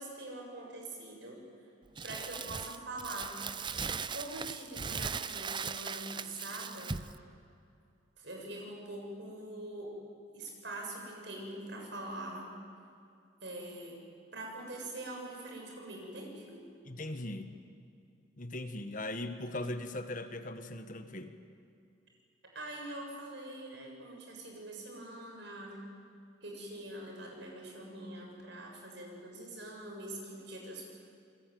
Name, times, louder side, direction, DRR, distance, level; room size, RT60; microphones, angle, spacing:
voice 1, 0.0-1.4 2.0-3.4 4.1-7.0 8.2-9.9 10.3-12.5 13.4-14.0 14.3-16.6 22.5-26.1 26.4-30.9, right 1 dB, 65° right, 0 dB, 7.5 m, -44 dB
Crumpling crinkling, 2.0-7.2, right 5 dB, 25° right, 0.6 m, -39 dB
voice 2, 16.9-17.6 18.4-21.3, left 1 dB, 40° left, 8 dB, 1.5 m, -39 dB
28.5 x 21.5 x 9.4 m, 2.4 s
head